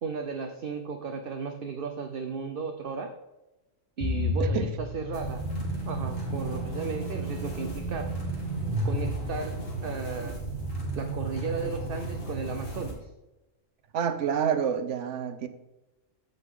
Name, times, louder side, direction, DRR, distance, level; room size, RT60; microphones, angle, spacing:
voice 1, 0.0-3.1 4.0-5.4 5.9-8.1 8.8-10.4 10.9-13.1, right 5 dB, 50° right, 5 dB, 0.9 m, -35 dB
sound 1, 4.0-10.0, left 1 dB, 25° right, 1.6 m, -33 dB
sound 2, 5.1-12.9, right 2 dB, 85° left, 2.7 m, -34 dB
voice 2, 13.9-15.5, right 8 dB, 70° right, 10 dB, 1.1 m, -28 dB
14.5 x 5.4 x 3.7 m, 1.0 s
omnidirectional pair, 1.3 m